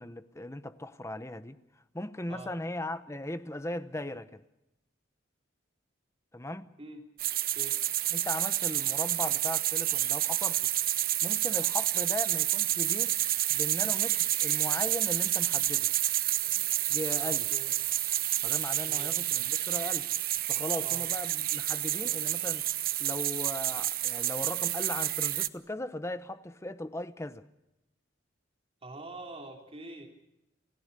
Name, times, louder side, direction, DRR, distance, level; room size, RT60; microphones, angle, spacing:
voice 1, 0.0-1.6 1.9-4.4 6.3-6.7 8.1-10.7 11.2-13.2 13.5-15.9 16.9-17.5 18.4-20.1 20.5-22.6 23.0-27.4, left 1 dB, 15° left, 0.9 m, -38 dB
sound 1, 7.2-25.5, right 14 dB, 50° right, 0.7 m, -29 dB
voice 2, 17.2-17.7 18.9-19.3 20.8-21.1 28.8-30.1, right 2 dB, 30° right, 3.2 m, -45 dB
29.0 x 15.5 x 6.7 m
head